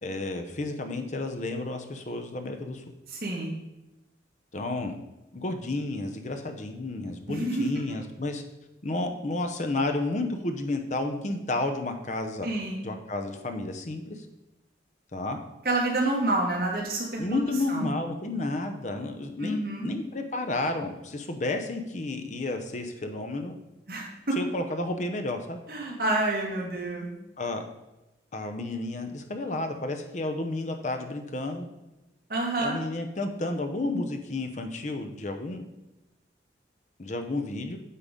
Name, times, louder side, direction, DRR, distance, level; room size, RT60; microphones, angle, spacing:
voice 1, 0.0-2.8 4.5-5.0 5.3-8.4 8.8-12.5 12.8-14.3 15.1-15.4 17.2-23.5 24.4-25.6 27.4-27.6 28.3-31.6 32.6-35.7 37.0-37.8, left 2 dB, 40° left, 5 dB, 0.7 m, -31 dB
voice 2, 3.1-3.5 7.3-7.7 12.4-12.8 15.6-17.4 17.7-17.9 19.4-19.9 23.9-24.4 25.7-27.1 32.3-32.8, right 2 dB, 55° right, -3 dB, 2.0 m, -28 dB
8.3 x 3.8 x 5.2 m, 0.97 s
head